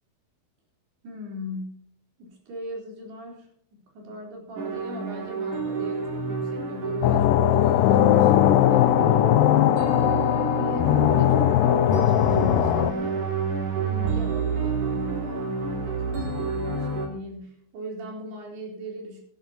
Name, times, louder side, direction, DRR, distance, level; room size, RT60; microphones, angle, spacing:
voice 1, 1.0-1.8 2.2-8.3 8.7-10.0 10.6-13.4 13.8-19.2, left 1 dB, 80° right, -1 dB, 6.0 m, -38 dB
sound 1, 4.6-17.1, right 4 dB, 55° right, 3.9 m, -29 dB
sound 2, 7.0-12.9, left 13 dB, 90° left, 1.9 m, -19 dB
17.0 x 13.5 x 2.9 m, 0.68 s
omnidirectional pair, 4.6 m